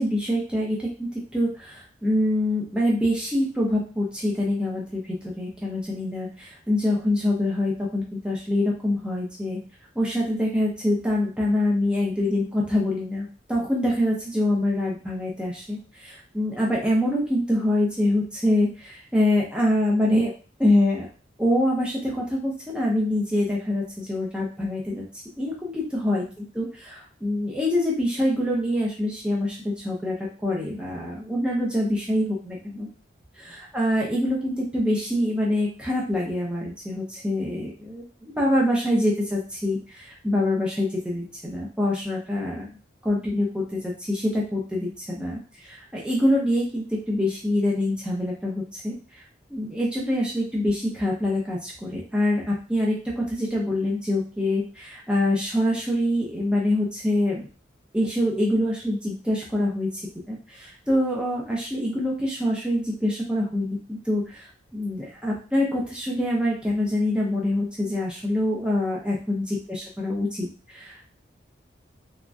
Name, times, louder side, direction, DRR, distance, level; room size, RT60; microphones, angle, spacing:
voice 1, 0.0-9.6 10.0-20.3 20.6-21.1 21.4-25.0 25.4-30.2 30.4-32.9 33.4-42.7 43.0-49.2 49.5-57.5 57.9-60.0 60.3-71.1, left 1 dB, 5° right, -4 dB, 0.6 m, -25 dB
3.4 x 2.2 x 2.5 m, 0.36 s
head